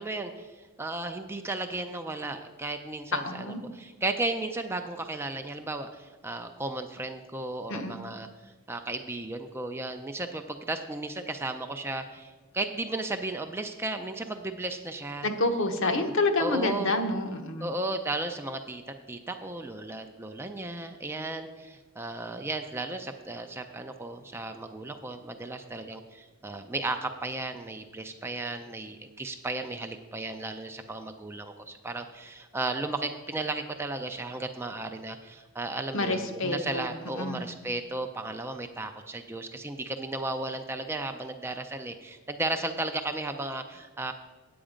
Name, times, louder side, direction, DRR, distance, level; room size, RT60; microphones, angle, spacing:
voice 1, 0.0-15.3 15.8-16.1 16.4-16.9 17.6-18.8 19.1-44.1, right 2 dB, 10° right, 6 dB, 0.4 m, -35 dB
voice 2, 3.1-3.6 7.7-8.0 15.2-17.7 35.9-36.9 37.2-37.5, left 2 dB, 60° left, 6 dB, 0.9 m, -28 dB
8.7 x 8.1 x 5.1 m, 1.3 s
head